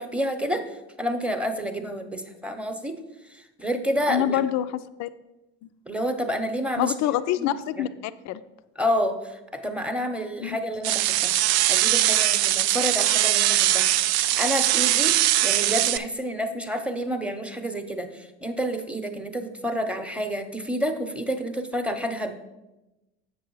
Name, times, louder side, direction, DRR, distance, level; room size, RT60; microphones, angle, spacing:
voice 1, 0.0-3.0 3.3-4.4 5.9-6.9 7.4-7.9 8.8-11.3 11.7-13.9 14.2-22.3, equal, 5° right, 7 dB, 0.9 m, -29 dB
voice 2, 4.1-5.1 6.8-8.4 10.4-10.6, left 11 dB, 55° left, 14 dB, 0.5 m, -26 dB
sound 1, 10.8-16.0, right 14 dB, 80° right, 0.5 m, -21 dB
7.6 x 6.1 x 4.7 m, 1.0 s
hypercardioid pair, 75°, 33 cm